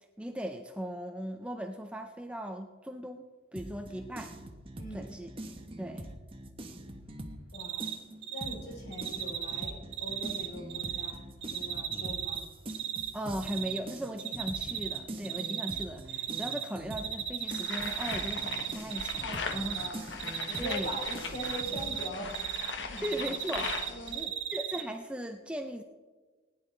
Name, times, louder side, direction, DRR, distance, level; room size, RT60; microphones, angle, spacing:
voice 1, 0.2-3.3 3.5-4.3 4.9-5.3 5.8-6.2 13.1-19.8 20.6-20.9 23.0-25.8, equal, 5° right, 5 dB, 0.5 m, -38 dB
sound 1, 3.6-7.5 7.8-22.0, right 1 dB, 30° right, 1.0 m, -44 dB
voice 2, 4.8-5.2 7.5-7.9 8.3-11.2 11.5-12.4 19.2-20.0 20.4-23.2 23.9-24.2, left 1 dB, 60° left, -2 dB, 3.9 m, -42 dB
Cricket, 7.5-7.9 8.2-8.5 8.9-11.1 11.4-13.1 13.4-13.8 14.2-15.0 15.2-16.6 16.9-19.2 19.5-19.9 20.2-22.7 23.0-24.8, right 10 dB, 70° right, 1.3 m, -35 dB
sound 2, 17.5-24.2, left 4 dB, 75° left, 1.2 m, -39 dB
20.0 x 10.5 x 3.3 m, 1.3 s
head